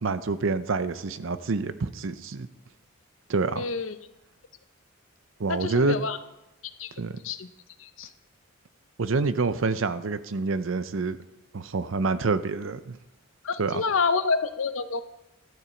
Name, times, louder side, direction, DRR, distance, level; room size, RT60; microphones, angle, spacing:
voice 1, 0.0-2.5 3.3-3.6 5.4-6.0 7.0-7.2 9.0-11.2 11.5-13.0 13.6-13.8, right 4 dB, 75° right, 13 dB, 0.6 m, -27 dB
voice 2, 3.6-4.0 5.5-6.2 6.8-6.9 7.2-7.5 7.8-8.1 13.4-15.0, left 4 dB, 80° left, 11 dB, 0.7 m, -28 dB
12.0 x 11.0 x 4.4 m, 0.96 s
head